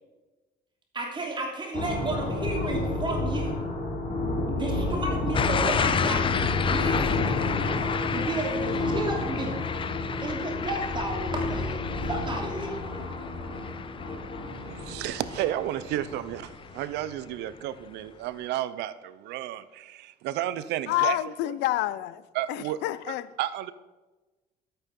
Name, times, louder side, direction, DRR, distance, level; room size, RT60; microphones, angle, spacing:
voice 1, 0.9-3.6 4.5-6.3 6.6-7.5 8.1-9.6 10.2-12.8, right 2 dB, 30° right, 2.9 m, -33 dB
sound 1, 1.7-17.1, left 2 dB, 55° left, 3.4 m, -31 dB
sound 2, 5.3-16.2 16.6-17.0, left 7 dB, 30° left, 0.5 m, -31 dB
voice 2, 14.6-21.2 22.3-22.8 23.1-23.7, right 13 dB, 85° right, 0.7 m, -32 dB
voice 3, 20.9-22.2 22.5-23.3, left 15 dB, 85° left, 0.6 m, -28 dB
12.5 x 8.8 x 5.4 m
cardioid pair, 110°, 17 cm